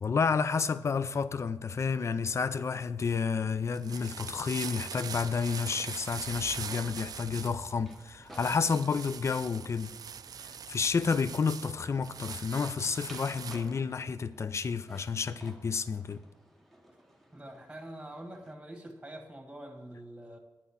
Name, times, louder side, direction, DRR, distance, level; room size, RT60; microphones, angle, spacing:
voice 1, 0.0-9.9 10.4-16.2, left 5 dB, 40° left, 0.4 m, -30 dB
sound 1, 3.6-18.5, equal, 5° left, 1.0 m, -58 dB
sound 2, 3.6-13.8, right 7 dB, 60° right, 0.3 m, -42 dB
voice 2, 17.3-20.4, right 1 dB, 15° right, 1.5 m, -45 dB
10.0 x 4.1 x 7.0 m
wide cardioid pair, 105°, 8 cm